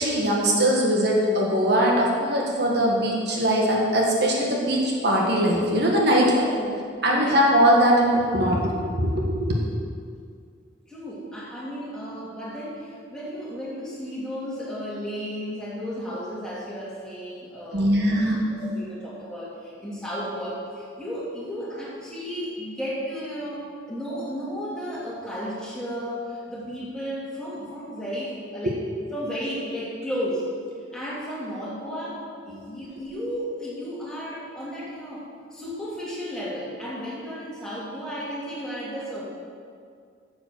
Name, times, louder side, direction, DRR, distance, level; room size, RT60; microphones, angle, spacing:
voice 1, 0.0-6.5 7.0-9.7 17.7-18.4 28.6-28.7 32.5-32.8, equal, 60° right, -2 dB, 1.5 m, -21 dB
voice 2, 6.1-6.8 7.1-7.3 10.9-18.2 18.5-28.8 29.1-30.5 30.9-35.2 35.5-39.2, equal, 5° left, -7 dB, 2.6 m, -33 dB
9.7 x 7.2 x 6.6 m, 2.2 s
head